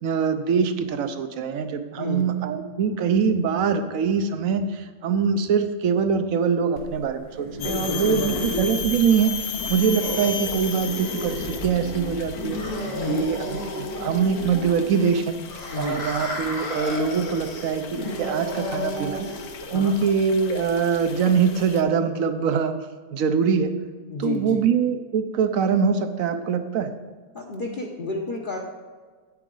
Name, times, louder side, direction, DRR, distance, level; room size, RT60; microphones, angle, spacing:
voice 1, 0.0-9.3 9.7-12.6 13.0-15.4 15.8-19.3 19.7-22.7 23.1-23.7 24.2-26.9, right 6 dB, 65° right, 9 dB, 1.0 m, -23 dB
voice 2, 2.0-2.3 7.6-8.3 12.9-13.3 15.7-16.1 19.7-20.0 24.1-24.6 27.3-28.6, left 3 dB, 40° left, -1 dB, 0.8 m, -31 dB
sound 1, 6.8-19.8, left 1 dB, 85° left, 2.5 m, -33 dB
sound 2, 7.6-21.8, left 6 dB, 60° left, 1.0 m, -36 dB
9.2 x 9.0 x 3.8 m, 1.5 s
omnidirectional pair, 1.7 m